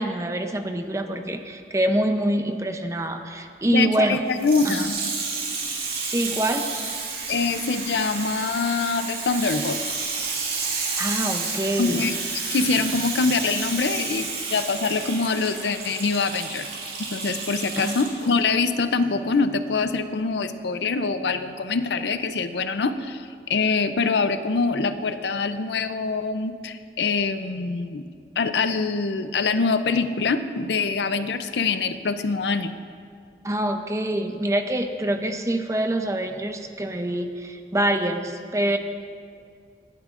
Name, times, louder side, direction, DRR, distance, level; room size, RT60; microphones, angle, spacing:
voice 1, 0.0-4.2 4.6-4.9 6.1-6.7 11.0-12.0 17.8-18.1 33.4-38.8, right 1 dB, 15° right, 6 dB, 0.6 m, -25 dB
voice 2, 3.7-5.0 7.3-9.8 10.2-10.3 11.8-12.2 12.5-16.7 17.0-28.0 28.4-32.8, left 4 dB, 80° left, 11 dB, 0.5 m, -24 dB
Water tap faucet / Sink (filling or washing), 4.3-18.3 19.0-19.1, right 4 dB, 55° right, 2.4 m, -31 dB
18.5 x 11.5 x 2.5 m, 2.2 s
head